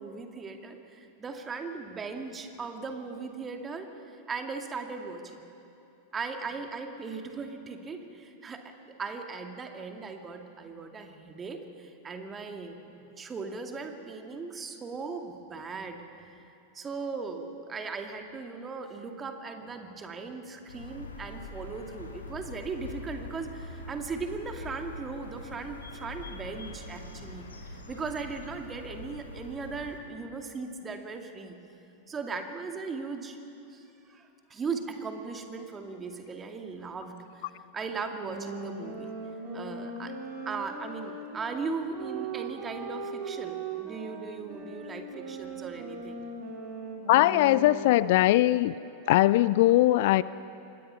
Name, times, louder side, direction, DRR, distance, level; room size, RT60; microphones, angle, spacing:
voice 1, 0.0-5.4 6.1-8.7 9.0-16.5 16.7-31.6 32.1-33.4 33.7-37.5 37.7-39.1 39.5-40.1 40.5-46.2, right 4 dB, 20° right, 4 dB, 2.2 m, -38 dB
sound 1, 20.7-30.0, left 2 dB, 75° left, 2.9 m, -43 dB
sound 2, 38.1-48.1, right 4 dB, 40° right, 3.9 m, -39 dB
voice 2, 47.1-48.7 49.1-50.2, left 16 dB, 50° left, 18 dB, 0.4 m, -21 dB
26.5 x 21.5 x 5.7 m, 2.8 s
figure-of-eight pair, 90°, 0 cm